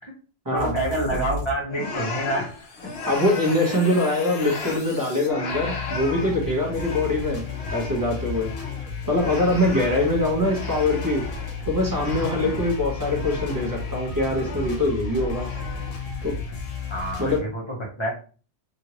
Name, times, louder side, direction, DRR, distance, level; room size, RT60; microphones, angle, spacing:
voice 1, 0.5-2.5 2.8-2.9 3.6-3.9 12.2-12.5 16.9-17.6 18.0-18.1, right 1 dB, 25° left, -3 dB, 1.0 m, -28 dB
sound 1, 0.6-1.5 1.8-17.4, left 4 dB, 80° left, 1.1 m, -34 dB
sound 2, 1.7-4.9 5.2-11.6 11.8-13.9 14.2-14.9 15.2-16.0, left 3 dB, 60° left, 1.0 m, -36 dB
voice 2, 3.1-7.4 7.7-8.5 9.1-11.2 11.6-15.5 16.2-16.3 17.2-17.4, left 1 dB, 20° right, -1 dB, 0.9 m, -23 dB
2.9 x 2.6 x 2.9 m, 0.38 s
omnidirectional pair, 1.3 m